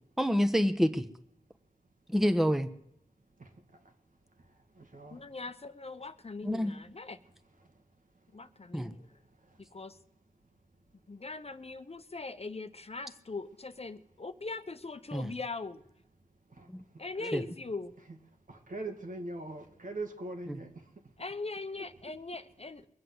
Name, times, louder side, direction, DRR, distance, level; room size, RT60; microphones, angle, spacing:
voice 1, 0.2-1.0 2.1-2.7 6.4-6.7 8.7-8.9 15.1-15.3 16.7-16.8 17.3-17.4 20.5-20.6, equal, ahead, 9 dB, 1.2 m, -27 dB
voice 2, 3.4-3.9 4.4-5.3 7.6-7.8 9.4-9.6 16.5-17.4 18.1-18.2 18.5-21.1 21.8-21.9, right 2 dB, 70° right, 4 dB, 2.2 m, -43 dB
voice 3, 5.1-7.2 8.3-9.0 9.7-10.0 11.1-15.8 17.0-17.9 21.2-22.9, left 3 dB, 45° left, 10 dB, 1.0 m, -41 dB
22.0 x 7.8 x 7.9 m, 0.76 s
cardioid pair, 45°, 14 cm